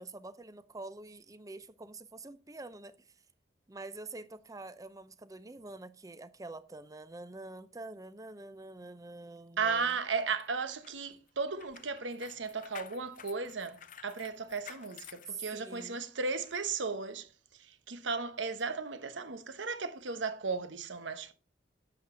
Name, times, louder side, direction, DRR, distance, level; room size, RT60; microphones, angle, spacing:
voice 1, 0.0-3.1 3.7-9.9 15.3-16.0, right 3 dB, 20° right, 0.6 m, -46 dB
voice 2, 9.6-21.3, right 4 dB, 80° right, 1.1 m, -35 dB
sound 1, 9.7-16.0 16.4-16.6, left 9 dB, 45° left, 0.7 m, -53 dB
11.5 x 8.0 x 3.8 m
head